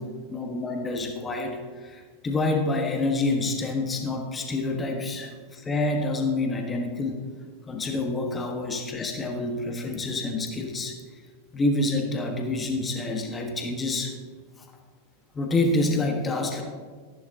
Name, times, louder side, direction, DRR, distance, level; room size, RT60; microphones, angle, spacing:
voice 1, 0.3-7.2 7.7-11.0 11.5-14.1 14.6-14.7 15.3-16.6, left 2 dB, 15° left, 3 dB, 1.3 m, -27 dB
13.5 x 11.0 x 2.8 m, 1.5 s
figure-of-eight pair, 90°, 0 cm